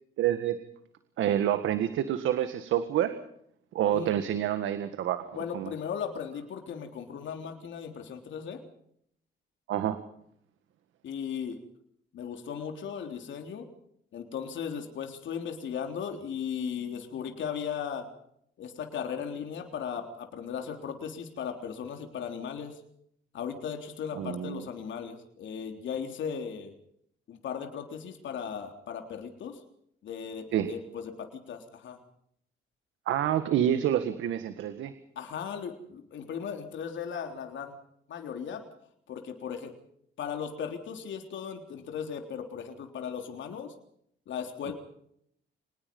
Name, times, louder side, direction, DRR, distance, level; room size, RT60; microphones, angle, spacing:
voice 1, 0.2-0.6 1.2-3.1 3.7-5.7 9.7-10.0 24.2-24.6 30.5-30.7 33.1-34.9, right 11 dB, 80° right, 10 dB, 1.8 m, -28 dB
voice 2, 5.3-8.6 11.0-11.6 12.1-13.7 14.1-18.1 18.6-22.8 23.3-26.7 27.3-29.6 30.0-32.0 35.2-37.8 38.1-38.6 39.1-39.7 40.2-43.7 44.3-44.7, left 7 dB, 70° left, 4 dB, 3.7 m, -37 dB
26.0 x 20.0 x 5.5 m, 0.69 s
cardioid pair, 90°, 20 cm